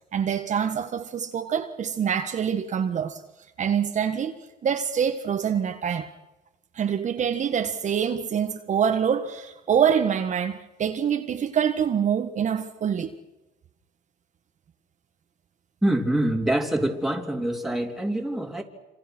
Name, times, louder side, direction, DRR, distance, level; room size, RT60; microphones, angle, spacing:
voice 1, 0.1-3.2 3.6-4.3 4.6-6.1 6.7-13.1, right 8 dB, 45° right, 1.6 m, -25 dB
voice 2, 15.8-18.6, right 1 dB, ahead, 3.5 m, -25 dB
27.5 x 26.5 x 6.2 m
cardioid pair, 110°, 17 cm